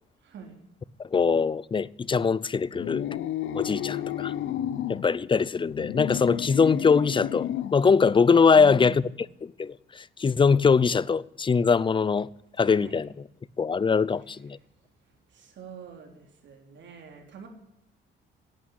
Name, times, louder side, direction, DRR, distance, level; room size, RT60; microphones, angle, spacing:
voice 1, 0.2-0.6 8.5-9.2 12.6-13.0 15.3-17.5, right 6 dB, 65° right, 3.7 m, -45 dB
voice 2, 1.0-3.1 3.5-4.3 4.9-9.0 9.4-12.3 12.6-13.1 13.6-14.6, left 5 dB, 25° left, 0.5 m, -22 dB
sound 1, 2.7-5.0 5.6-7.8, left 11 dB, 80° left, 0.8 m, -31 dB
11.0 x 8.7 x 9.7 m
cardioid pair, 90°, 20 cm